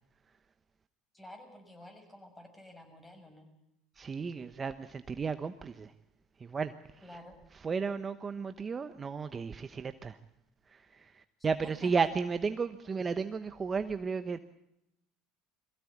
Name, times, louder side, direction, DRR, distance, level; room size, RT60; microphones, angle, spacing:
voice 1, 1.1-3.5 7.0-7.4 11.6-11.9, left 1 dB, 15° left, 5 dB, 6.3 m, -51 dB
voice 2, 4.0-5.9 6.4-7.2 7.5-10.2 10.7-14.4, right 5 dB, 30° right, 10 dB, 1.0 m, -34 dB
22.5 x 16.0 x 8.5 m, 0.84 s
supercardioid pair, 95°, 0 cm